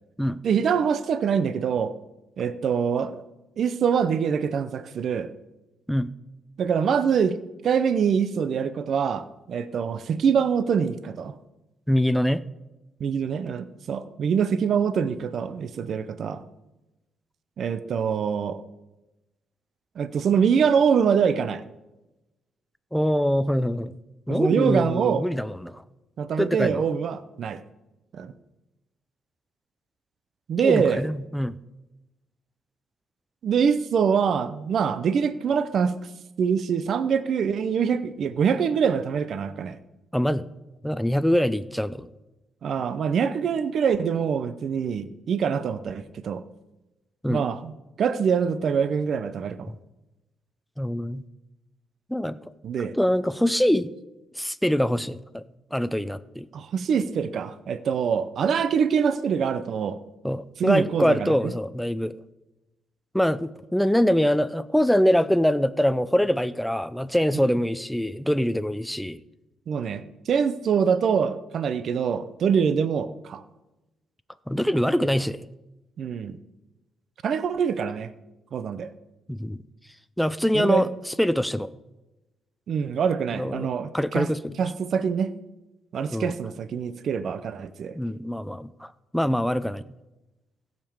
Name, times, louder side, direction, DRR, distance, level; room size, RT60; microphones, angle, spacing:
voice 1, 0.4-1.9 2.4-3.2 3.6-5.3 6.6-7.4 7.6-11.4 13.0-16.4 17.6-18.6 20.0-21.6 24.3-25.3 26.2-27.6 28.1-28.3 30.5-31.0 33.4-36.0 36.4-39.8 42.6-46.4 47.3-47.7 48.0-49.7 52.6-52.9 56.5-60.0 60.6-61.5 67.3-67.4 69.7-73.4 76.0-76.4 77.2-78.1 78.5-78.9 80.5-80.9 82.7-84.3 84.6-85.3 85.9-87.9, right 7 dB, 60° right, 13 dB, 0.6 m, -24 dB
voice 2, 11.9-12.4 22.9-24.0 24.3-25.8 26.4-26.8 30.6-31.6 40.1-40.5 40.8-42.1 47.2-47.4 50.8-51.2 52.1-52.4 52.8-53.9 54.4-55.4 55.7-56.5 60.2-62.2 63.1-69.2 74.5-75.4 79.3-79.6 80.2-81.7 83.3-83.7 83.9-84.6 86.1-86.3 87.9-89.8, equal, ahead, 14 dB, 0.5 m, -24 dB
15.5 x 5.2 x 7.3 m, 1.0 s
cardioid pair, 90°, 0 cm